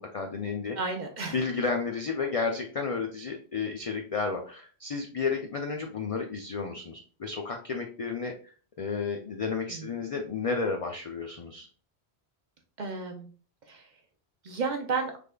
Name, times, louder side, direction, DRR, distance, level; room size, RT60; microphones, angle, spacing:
voice 1, 0.0-0.8 1.3-11.7, left 4 dB, 65° left, 3 dB, 0.3 m, -32 dB
voice 2, 0.7-1.4 9.7-9.9 12.8-13.3 13.7-13.9 14.4-15.1, right 4 dB, 55° right, 3 dB, 0.6 m, -32 dB
3.4 x 3.2 x 2.2 m, 0.40 s
omnidirectional pair, 1.1 m